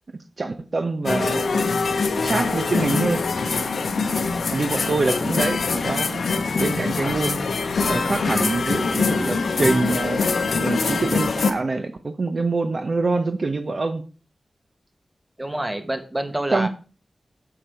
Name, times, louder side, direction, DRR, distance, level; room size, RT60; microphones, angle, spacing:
voice 1, 0.4-1.6 2.1-3.2 4.5-6.3 6.6-10.2 10.6-14.0 16.5-16.7, right 3 dB, 50° right, 8 dB, 0.7 m, -25 dB
sound 1, 1.0-11.5, left 4 dB, 90° left, 0.8 m, -23 dB
voice 2, 15.4-16.7, right 1 dB, 20° right, 8 dB, 1.2 m, -27 dB
7.2 x 6.9 x 4.6 m, 0.37 s
wide cardioid pair, 85°, 0 cm